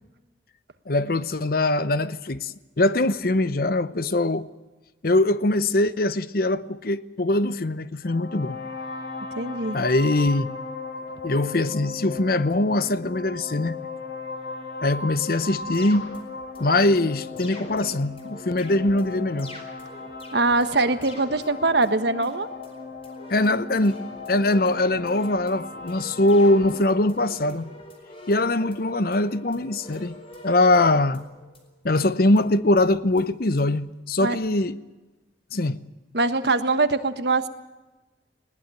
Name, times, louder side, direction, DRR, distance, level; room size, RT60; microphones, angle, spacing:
voice 1, 0.9-4.5 5.0-8.6 9.7-10.5 11.2-13.8 14.8-16.1 16.6-19.5 23.3-24.0 24.3-27.7 28.3-30.2 30.4-31.2 31.8-34.8 35.5-35.8, left 2 dB, 55° left, 0.8 m, -22 dB
sound 1, 8.0-26.8, left 4 dB, 70° left, 2.7 m, -37 dB
voice 2, 9.3-9.8 20.3-22.5 34.2-34.4 36.1-37.5, right 3 dB, 65° right, 1.4 m, -22 dB
sound 2, 15.4-31.7 32.0-32.1 32.4-32.5 32.8-32.9 33.2-33.3 33.6-33.7, left 1 dB, 30° left, 4.6 m, -44 dB
20.5 x 19.0 x 9.0 m
head